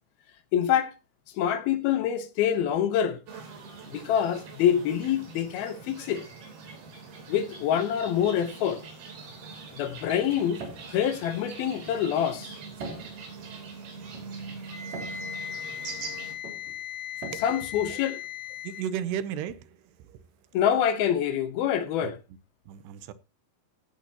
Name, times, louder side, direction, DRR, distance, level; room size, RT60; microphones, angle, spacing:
voice 1, 0.5-0.9 1.3-3.2 3.9-6.2 7.3-8.8 9.7-12.6 17.4-18.2 20.5-22.2, left 9 dB, 70° left, 2.8 m, -26 dB
sound 1, 3.3-16.3, right 4 dB, 65° right, 5.1 m, -43 dB
sound 2, 8.9-18.7, right 3 dB, 45° right, 3.6 m, -46 dB
Wind instrument woodwind instrument, 14.7-18.9, left 9 dB, 35° left, 4.7 m, -38 dB
voice 2, 18.6-20.2 22.0-22.1 22.7-23.1, right 9 dB, 85° right, 2.9 m, -34 dB
16.5 x 9.2 x 2.9 m
omnidirectional pair, 4.7 m